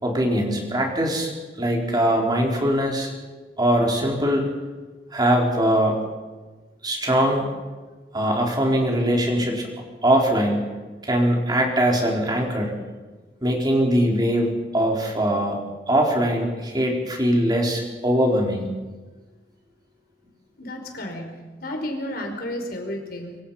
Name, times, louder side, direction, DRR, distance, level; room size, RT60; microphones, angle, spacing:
voice 1, 0.0-1.3 1.6-3.1 3.6-4.5 5.1-6.0 6.8-7.5 8.1-9.7 10.0-10.6 11.0-12.7 13.4-15.6 15.9-18.7, equal, 25° right, 0 dB, 4.6 m, -21 dB
voice 2, 20.6-23.4, left 1 dB, 60° left, 3 dB, 5.3 m, -32 dB
25.5 x 25.0 x 5.9 m, 1.3 s
head